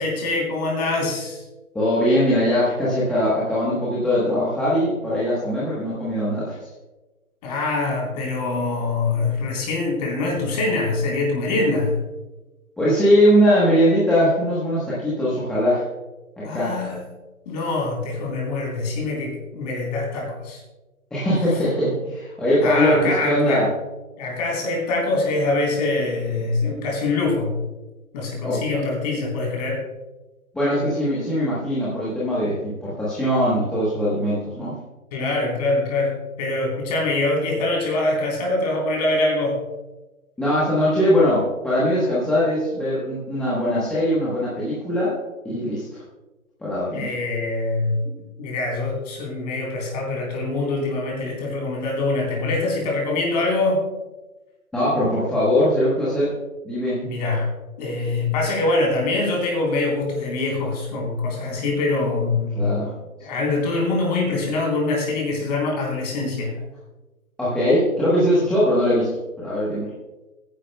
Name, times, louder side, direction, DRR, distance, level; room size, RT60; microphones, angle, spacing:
voice 1, 0.0-1.4 7.4-12.0 16.4-17.1 17.5-20.6 22.6-23.6 24.2-27.6 28.1-29.8 35.1-39.6 46.9-48.0 48.4-53.8 57.0-57.5 57.8-62.7 63.2-66.5, left 2 dB, 30° left, -1 dB, 3.6 m, -24 dB
voice 2, 1.7-6.6 12.8-15.8 16.4-16.7 21.1-23.7 28.4-28.8 30.5-34.7 40.4-45.2 45.4-46.0 46.6-47.1 54.7-56.3 56.6-57.0 62.6-62.9 67.4-69.9, equal, ahead, -10 dB, 1.1 m, -21 dB
21.5 x 10.0 x 2.2 m, 1.1 s
hypercardioid pair, 155°, 43 cm